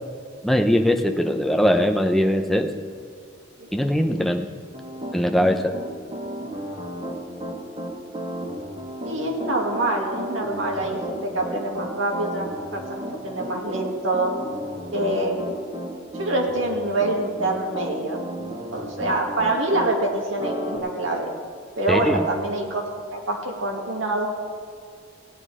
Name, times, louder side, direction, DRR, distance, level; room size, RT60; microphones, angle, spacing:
voice 1, 0.4-2.7 3.7-4.5 5.1-5.7 21.9-22.2, equal, ahead, 4 dB, 0.6 m, -21 dB
Piano, 4.7-19.9 20.4-20.8, equal, 25° right, 1.6 m, -33 dB
voice 2, 9.0-12.5 12.7-14.3 14.9-15.4 16.2-18.2 18.7-21.3 21.8-22.8 23.1-24.3, right 2 dB, 80° right, 0 dB, 2.2 m, -25 dB
16.5 x 9.9 x 4.9 m, 2.1 s
head